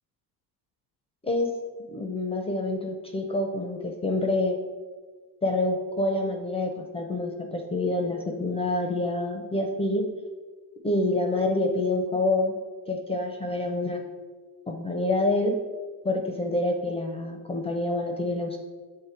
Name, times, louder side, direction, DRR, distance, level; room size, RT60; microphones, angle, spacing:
voice 1, 1.9-4.6 5.4-10.0 10.8-12.5 12.9-14.0 14.7-15.6 16.0-18.6, left 2 dB, 15° left, 3 dB, 0.4 m, -27 dB
7.4 x 3.1 x 4.4 m, 1.4 s
cardioid pair, 140°, 44 cm